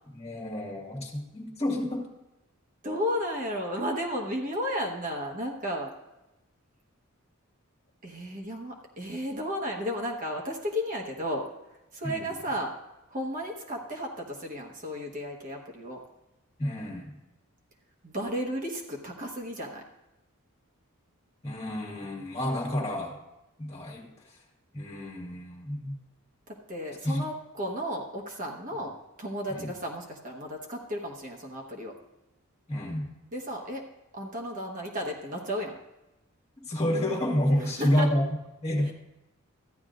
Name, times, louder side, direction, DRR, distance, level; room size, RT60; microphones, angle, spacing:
voice 1, 0.1-2.1 12.0-12.3 16.6-17.2 21.4-23.2 23.6-24.4 24.7-26.0 27.0-27.2 29.5-29.7 32.7-33.1 36.6-38.9, left 1 dB, 30° left, -2 dB, 1.9 m, -29 dB
voice 2, 2.8-5.9 8.0-11.4 11.9-12.7 13.1-16.0 18.0-19.8 26.5-31.9 33.3-33.8 34.1-35.8 37.6-38.1 38.8-38.9, equal, 40° right, 0 dB, 1.2 m, -33 dB
14.0 x 10.5 x 2.5 m, 0.97 s
head